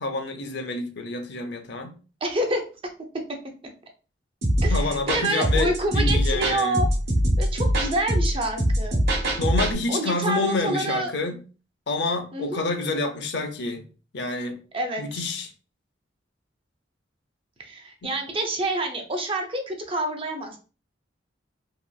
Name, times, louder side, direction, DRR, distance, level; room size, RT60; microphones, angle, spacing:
voice 1, 0.0-1.9 4.7-6.8 9.4-11.4 11.9-13.8 14.1-14.6 15.0-15.5 18.0-18.1, left 3 dB, 65° left, 0.6 m, -28 dB
voice 2, 2.2-2.6 4.6-6.9 7.4-9.0 9.9-11.1 12.3-12.7 14.7-15.2 17.6-20.6, right 1 dB, 30° right, 0.6 m, -27 dB
sound 1, 4.4-9.7, equal, 60° right, 1.0 m, -23 dB
2.9 x 2.9 x 2.3 m
head